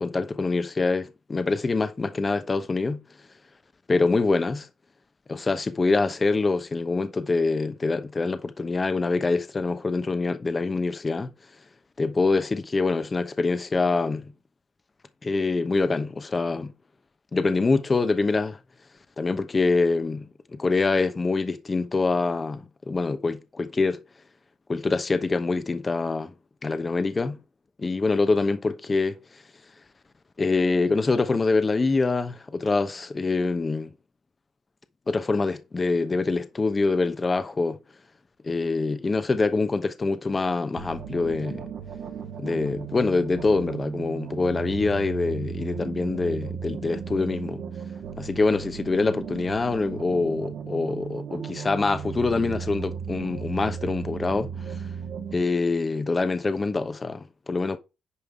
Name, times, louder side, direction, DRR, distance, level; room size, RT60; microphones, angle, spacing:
voice 1, 0.0-3.0 3.9-4.7 5.3-11.3 12.0-14.3 15.2-16.7 17.3-18.6 19.2-24.0 24.7-26.3 26.6-27.4 27.8-29.2 30.4-33.9 35.1-37.8 38.4-41.7 42.4-47.6 48.2-54.8 55.3-57.8, left 3 dB, 30° left, 1.0 m, -25 dB
sound 1, 40.8-55.4, right 7 dB, 70° right, 1.8 m, -36 dB
9.7 x 5.3 x 3.6 m
cardioid pair, 90°, 0 cm